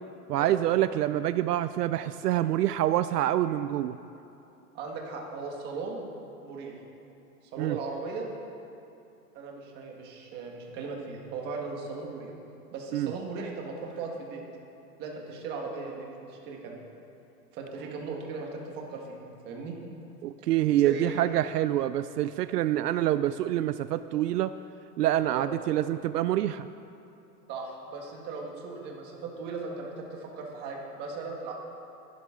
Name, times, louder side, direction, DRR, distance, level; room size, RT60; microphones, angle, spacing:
voice 1, 0.3-4.0 7.6-7.8 12.9-13.1 20.2-24.5 25.0-26.7, right 13 dB, 75° right, 13 dB, 0.6 m, -26 dB
voice 2, 4.7-6.0 6.4-6.8 7.5-8.3 9.3-12.3 12.7-14.4 15.0-16.7 17.5-19.7 20.8-21.1 25.3-25.5 27.5-31.5, right 4 dB, 20° right, 0 dB, 1.5 m, -38 dB
21.0 x 12.0 x 3.7 m, 2.8 s
supercardioid pair, 170°, 48 cm